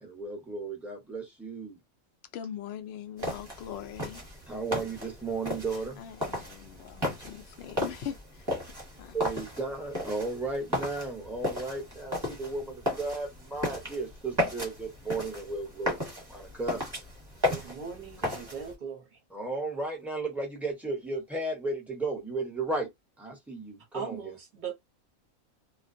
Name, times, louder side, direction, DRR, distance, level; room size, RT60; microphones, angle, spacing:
voice 1, 0.0-1.8 4.5-6.0 9.1-16.0 16.3-16.8 19.3-22.9 23.2-24.3, right 3 dB, ahead, 0.7 m, -34 dB
voice 2, 2.3-4.2 6.0-8.5 9.0-9.2, left 9 dB, 65° left, 0.6 m, -41 dB
sound 1, 3.2-18.7, left 1 dB, 20° right, 1.0 m, -35 dB
voice 3, 17.4-19.2 23.9-24.7, right 6 dB, 40° right, 0.8 m, -39 dB
2.4 x 2.2 x 2.5 m
omnidirectional pair, 1.4 m